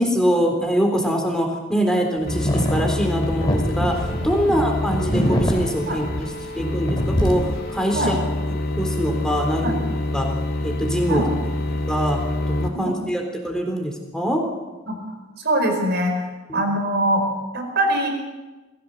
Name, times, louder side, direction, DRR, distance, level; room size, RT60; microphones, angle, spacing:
voice 1, 0.0-6.3 6.6-8.2 8.8-9.8 10.1-10.3 10.6-11.3 11.9-12.2 12.5-14.4 16.5-16.6, equal, 5° left, 2 dB, 3.7 m, -23 dB
sound 1, 2.3-12.7, left 2 dB, 45° left, 2.3 m, -27 dB
sound 2, 2.3-6.6 6.9-7.7, equal, 20° left, 2.9 m, -24 dB
voice 2, 15.4-16.1 16.5-17.3 17.5-18.1, right 1 dB, 50° right, 4 dB, 5.1 m, -22 dB
21.0 x 16.0 x 8.0 m, 1.2 s
head